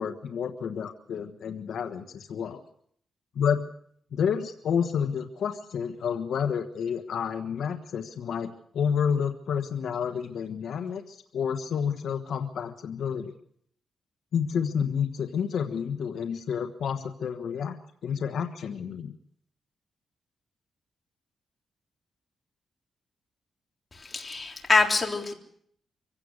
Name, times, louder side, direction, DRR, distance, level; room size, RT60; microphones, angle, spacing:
voice 1, 0.0-2.6 3.3-3.6 4.1-13.3 14.3-17.8 18.0-19.1, left 7 dB, 75° left, 6 dB, 1.4 m, -30 dB
voice 2, 23.9-25.3, left 3 dB, 25° left, 1 dB, 3.5 m, -25 dB
25.5 x 16.5 x 6.5 m, 0.66 s
cardioid pair, 115°, 0 cm